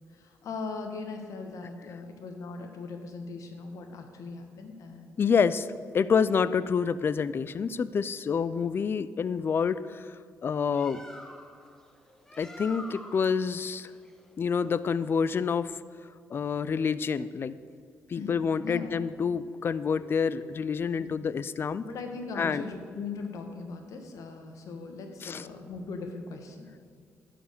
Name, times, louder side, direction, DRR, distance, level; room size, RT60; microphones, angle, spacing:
voice 1, 0.1-5.2 18.1-19.0 20.0-20.5 20.9-21.2 21.8-26.7, left 4 dB, 70° left, 5 dB, 1.3 m, -39 dB
voice 2, 5.2-5.7 5.9-11.0 12.4-13.9 14.4-15.8 16.3-17.6 18.1-21.8 22.4-22.6 25.2-25.5, left 6 dB, 40° left, 16 dB, 0.4 m, -28 dB
Bird, 10.6-15.7, left 1 dB, 10° left, 0.9 m, -48 dB
11.0 x 5.0 x 6.6 m, 2.1 s
cardioid pair, 90°, 6 cm